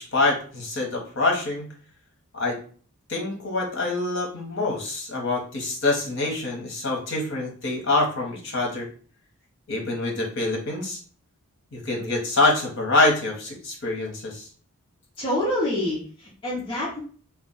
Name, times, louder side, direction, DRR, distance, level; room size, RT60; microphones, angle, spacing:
voice 1, 0.0-1.7 2.3-2.6 3.1-8.9 9.7-11.0 11.7-14.5, left 2 dB, 55° left, 0 dB, 1.0 m, -25 dB
voice 2, 15.2-17.0, left 1 dB, 25° left, -8 dB, 0.7 m, -27 dB
2.4 x 2.3 x 3.8 m, 0.42 s
head